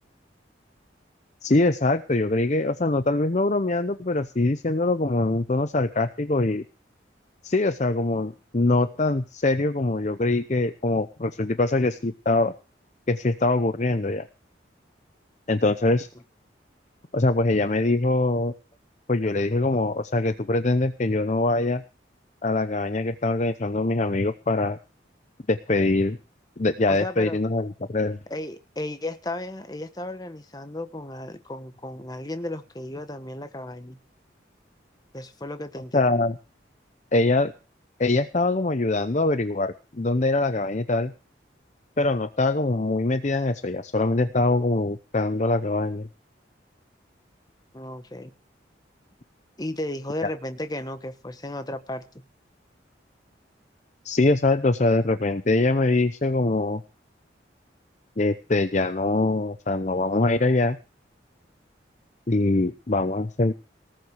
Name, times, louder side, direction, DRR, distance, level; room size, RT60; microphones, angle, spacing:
voice 1, 1.4-6.6 7.4-12.5 13.1-14.3 15.5-16.1 17.1-18.5 19.1-21.8 22.4-24.8 25.5-26.2 26.6-28.2 35.9-36.4 37.1-37.5 38.0-41.1 42.0-46.1 54.0-56.8 58.2-60.8 62.3-63.5, left 2 dB, 40° left, 11 dB, 0.7 m, -23 dB
voice 2, 26.9-27.4 28.3-34.0 35.1-36.3 47.7-48.3 49.6-52.1, left 1 dB, 20° left, 9 dB, 1.3 m, -34 dB
19.0 x 7.7 x 6.5 m, 0.33 s
head